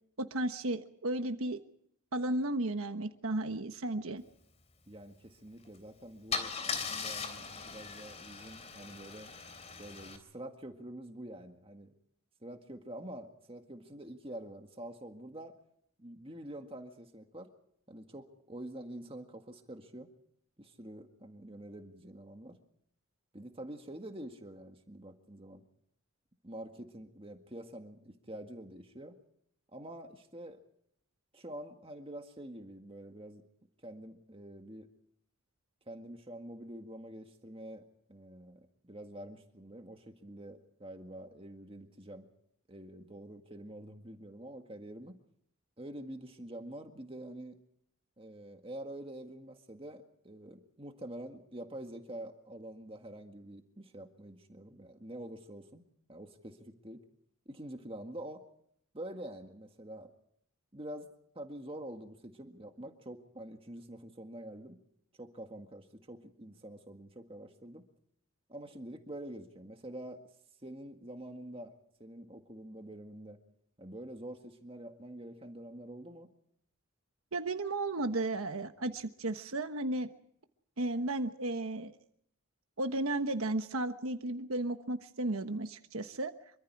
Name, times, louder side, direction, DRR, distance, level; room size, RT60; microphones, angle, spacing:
voice 1, 0.2-1.6 2.1-4.2 77.3-80.1 80.8-81.9 82.8-86.3, right 2 dB, 85° right, 8 dB, 1.2 m, -34 dB
voice 2, 4.9-9.3 9.8-11.9 12.4-15.5 16.0-17.5 17.9-20.1 20.6-22.6 23.3-25.6 26.4-29.2 29.7-30.6 31.3-33.4 33.8-34.9 35.9-42.3 42.7-45.2 45.8-47.6 48.2-55.8 56.1-57.0 57.5-58.4 58.9-60.1 60.7-61.1 61.4-64.8 65.2-67.8 68.5-70.2 70.6-71.7 72.0-73.4 73.8-76.3, right 1 dB, 25° right, 5 dB, 1.8 m, -46 dB
Car / Engine starting / Idling, 5.6-5.8 6.3-10.2, left 5 dB, 30° left, 3.3 m, -39 dB
26.5 x 24.5 x 4.8 m, 0.70 s
head